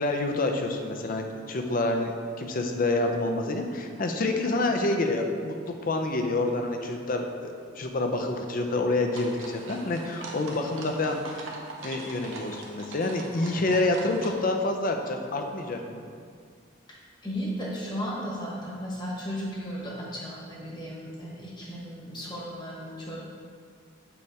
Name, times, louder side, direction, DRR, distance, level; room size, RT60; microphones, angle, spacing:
voice 1, 0.0-2.1 2.4-11.4 11.8-16.0, left 2 dB, 45° left, 4 dB, 0.5 m, -28 dB
sound 1, 9.1-14.3, right 2 dB, 85° right, 0.9 m, -42 dB
voice 2, 17.2-23.2, equal, 20° left, -4 dB, 1.2 m, -35 dB
6.9 x 3.3 x 4.8 m, 2.1 s
head